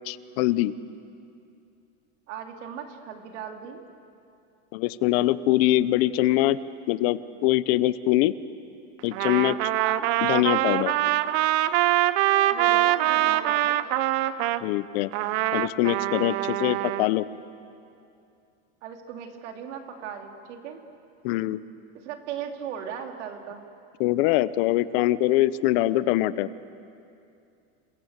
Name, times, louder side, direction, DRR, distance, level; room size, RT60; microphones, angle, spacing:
voice 1, 0.1-0.7 4.7-6.6 6.9-8.3 9.0-9.6 10.2-10.9 14.6-15.1 15.5-17.3 21.2-21.6 24.0-26.5, left 16 dB, 60° left, 16 dB, 0.9 m, -23 dB
voice 2, 2.3-3.8 9.8-10.1 12.5-13.9 18.8-20.8 21.9-23.6, right 8 dB, 75° right, 4 dB, 3.1 m, -37 dB
Trumpet, 9.1-14.6 15.1-17.1, right 15 dB, 55° right, 0.9 m, -24 dB
28.5 x 22.0 x 8.2 m, 2.6 s
supercardioid pair, 140°, 36 cm